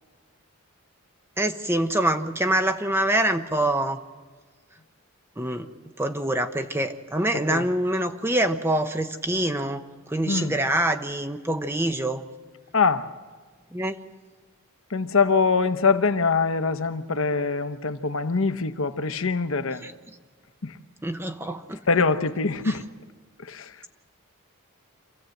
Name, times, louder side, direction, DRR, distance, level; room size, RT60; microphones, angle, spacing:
voice 1, 1.4-4.0 5.4-5.7 6.0-12.2 13.7-14.0 19.8-19.9 21.0-21.8 22.6-22.8, right 1 dB, 10° right, 0.8 m, -25 dB
voice 2, 12.7-13.1 14.9-19.8 20.6-20.8 21.9-22.8 23.4-23.7, left 4 dB, 65° left, 0.9 m, -23 dB
26.5 x 15.0 x 7.8 m
head